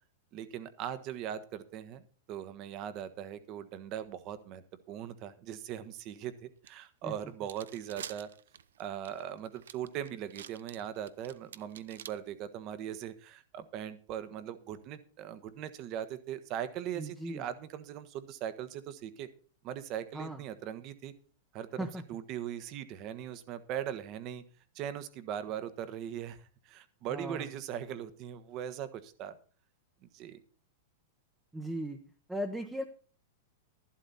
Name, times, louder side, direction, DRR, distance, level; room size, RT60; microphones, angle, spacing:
voice 1, 0.3-4.6 4.9-8.3 8.8-19.3 19.6-21.1 21.5-24.4 24.7-29.4 30.1-30.4, right 10 dB, 40° right, 13 dB, 1.3 m, -40 dB
sound 1, 6.6-6.7 7.2-12.1, right 9 dB, 90° right, 0.7 m, -47 dB
voice 2, 17.0-17.5 20.1-20.4 21.8-22.0 27.1-27.5 31.5-32.0 32.3-32.8, right 1 dB, 5° right, 5 dB, 1.0 m, -37 dB
11.5 x 11.5 x 4.2 m, 0.40 s
supercardioid pair, 140°, 0 cm